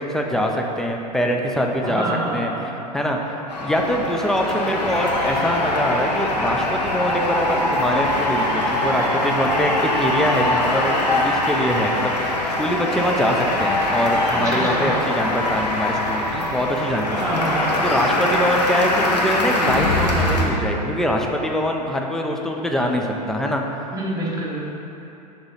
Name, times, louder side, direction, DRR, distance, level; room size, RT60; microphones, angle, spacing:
voice 1, 0.0-2.0 2.3-2.5 2.9-3.3 3.6-17.4 17.8-23.6, equal, ahead, 1 dB, 0.5 m, -23 dB
voice 2, 1.8-2.7 14.3-15.0 17.0-18.2 23.9-24.7, right 2 dB, 15° right, -5 dB, 1.4 m, -28 dB
sound 1, 3.5-20.4, left 1 dB, 85° left, 0.9 m, -22 dB
6.3 x 3.0 x 5.5 m, 2.9 s
hypercardioid pair, 95°, 21 cm